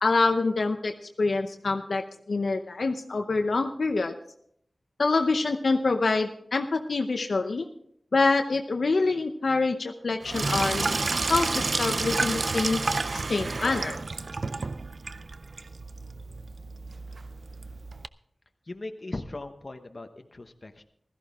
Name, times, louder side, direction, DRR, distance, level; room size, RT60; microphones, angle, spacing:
voice 1, 0.0-0.9 1.2-4.1 5.0-7.7 8.1-12.8 13.1-14.0, left 3 dB, 75° left, 5 dB, 0.8 m, -26 dB
Sink (filling or washing), 10.2-18.1, right 3 dB, 65° right, 0.4 m, -30 dB
voice 2, 18.7-20.8, left 2 dB, 45° left, 6 dB, 1.0 m, -39 dB
15.5 x 14.0 x 3.6 m, 0.68 s
wide cardioid pair, 75°, 0 cm